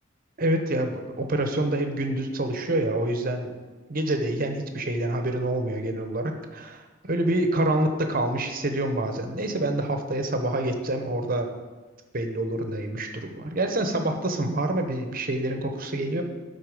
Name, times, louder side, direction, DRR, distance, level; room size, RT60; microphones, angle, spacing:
voice 1, 0.4-3.5 3.9-6.8 7.1-11.5 12.1-16.2, right 1 dB, 45° right, 5 dB, 0.9 m, -27 dB
12.5 x 4.2 x 4.9 m, 1.3 s
head